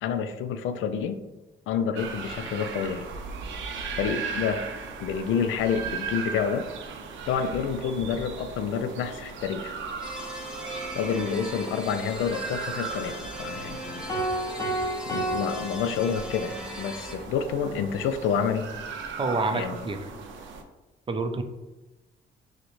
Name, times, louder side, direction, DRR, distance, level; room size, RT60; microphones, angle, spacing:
voice 1, 0.0-1.2 1.7-3.1 4.0-4.6 5.0-6.7 7.3-9.8 11.0-14.1 15.1-18.7 19.5-19.8, left 7 dB, 80° left, 9 dB, 0.4 m, -28 dB
sound 1, 2.0-20.6, right 5 dB, 75° right, 0.6 m, -38 dB
sound 2, 10.0-17.2, equal, 5° right, 1.1 m, -38 dB
sound 3, 14.1-16.6, right 1 dB, 15° left, 0.8 m, -31 dB
voice 2, 19.2-20.1 21.1-21.4, right 3 dB, 25° right, 7 dB, 0.4 m, -28 dB
6.2 x 2.1 x 3.0 m, 1.1 s
cardioid pair, 90°, 20 cm